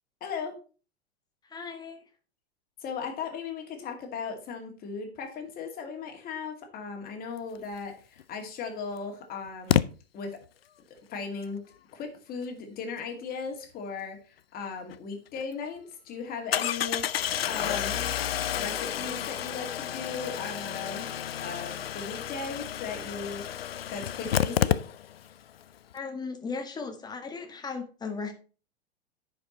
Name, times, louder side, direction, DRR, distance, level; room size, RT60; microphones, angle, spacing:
voice 1, 0.2-0.5 2.8-9.8 10.1-10.4 11.1-11.6 11.9-18.1 18.5-21.1 21.4-24.8, left 5 dB, 30° left, 3 dB, 2.3 m, -37 dB
voice 2, 1.5-2.0 25.9-28.3, left 4 dB, 15° left, 6 dB, 1.4 m, -36 dB
Engine starting, 8.2-8.3 9.7-9.8 14.9-15.0 15.4-15.5 16.5-25.3 25.6-25.7 25.9-26.0, left 10 dB, 70° left, 0.6 m, -30 dB
9.9 x 5.2 x 4.3 m, 0.36 s
figure-of-eight pair, 95°, 31 cm